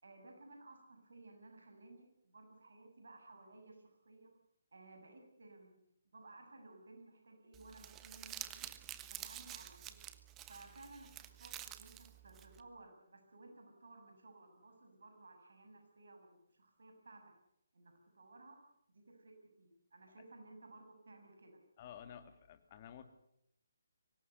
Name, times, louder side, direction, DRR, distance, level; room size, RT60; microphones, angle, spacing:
voice 1, 0.0-4.3 4.7-5.8 6.1-8.7 9.0-10.1 10.5-17.2 17.7-18.6 18.9-21.6, right 2 dB, 65° right, 4 dB, 7.2 m, -58 dB
Crumpling crinkling, 7.5-12.6, right 12 dB, 15° right, 1.3 m, -49 dB
voice 2, 21.8-23.0, left 9 dB, 35° left, 8 dB, 2.9 m, -52 dB
24.5 x 19.0 x 8.2 m, 0.74 s
figure-of-eight pair, 140°, 0 cm